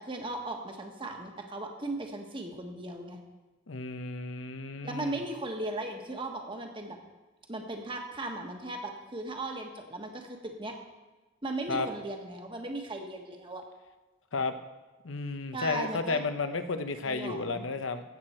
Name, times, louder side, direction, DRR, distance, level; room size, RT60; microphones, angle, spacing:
voice 1, 0.0-3.2 4.8-7.0 7.5-10.8 11.4-13.6 15.5-16.2 17.0-17.7, right 2 dB, 25° right, 3 dB, 1.4 m, -37 dB
voice 2, 3.7-5.2 11.7-11.9 14.3-14.6 15.0-18.0, left 4 dB, 90° left, 9 dB, 0.8 m, -32 dB
15.0 x 7.9 x 4.4 m, 1.2 s
head